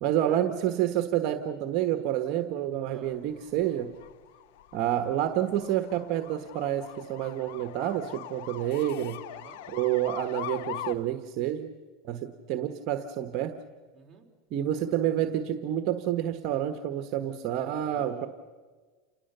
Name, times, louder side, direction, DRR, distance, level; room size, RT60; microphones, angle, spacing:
voice 1, 0.0-3.9 4.7-9.2 9.7-11.7 12.0-13.5 14.5-18.3, right 11 dB, 55° right, 8 dB, 1.3 m, -29 dB
sound 1, 3.1-11.0, left 13 dB, 75° left, 0.7 m, -42 dB
voice 2, 9.3-9.6 13.9-14.3 17.8-18.3, right 4 dB, 15° right, -1 dB, 3.9 m, -47 dB
28.5 x 19.5 x 6.9 m, 1.4 s
supercardioid pair, 130°, 0 cm